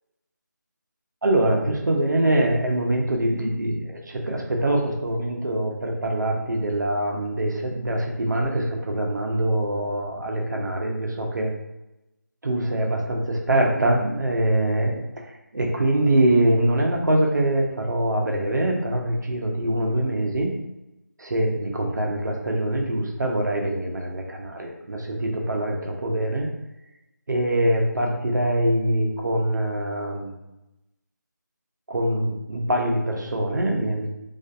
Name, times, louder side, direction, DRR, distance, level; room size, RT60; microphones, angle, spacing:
voice 1, 1.2-11.5 12.4-15.0 15.5-20.5 21.2-26.5 27.3-30.3 31.9-34.1, right 1 dB, 75° right, 0 dB, 0.6 m, -24 dB
2.5 x 2.4 x 2.3 m, 0.96 s
figure-of-eight pair, 175°, 10 cm